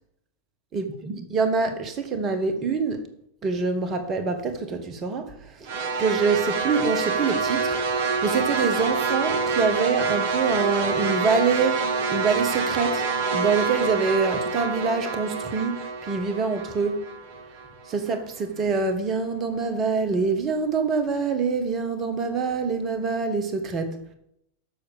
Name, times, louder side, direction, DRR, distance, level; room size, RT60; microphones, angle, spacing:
voice 1, 0.7-3.0 3.4-5.7 6.0-13.0 13.3-17.0 17.9-24.0, right 4 dB, 30° right, 1.4 m, -25 dB
sound 1, 5.7-17.9, right 4 dB, 50° right, 1.3 m, -27 dB
7.1 x 6.6 x 7.0 m
figure-of-eight pair, 90°, 0 cm